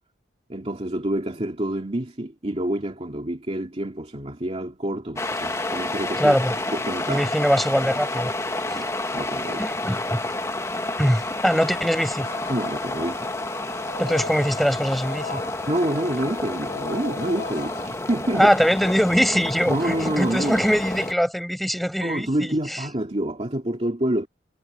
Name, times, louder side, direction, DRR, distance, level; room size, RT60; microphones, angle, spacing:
voice 1, 0.5-6.3 6.7-7.3 8.6-9.7 12.5-13.3 15.7-18.5 19.7-20.7 22.0-24.3, right 1 dB, 35° right, 2.6 m, -27 dB
sound 1, 5.2-21.1, left 2 dB, 15° left, 1.5 m, -30 dB
voice 2, 6.2-6.6 7.1-8.3 8.7-8.8 9.6-10.2 11.0-12.3 14.0-15.4 18.3-22.8, equal, ahead, 6.5 m, -22 dB
sound 2, 12.2-17.9, left 3 dB, 65° left, 6.0 m, -39 dB
head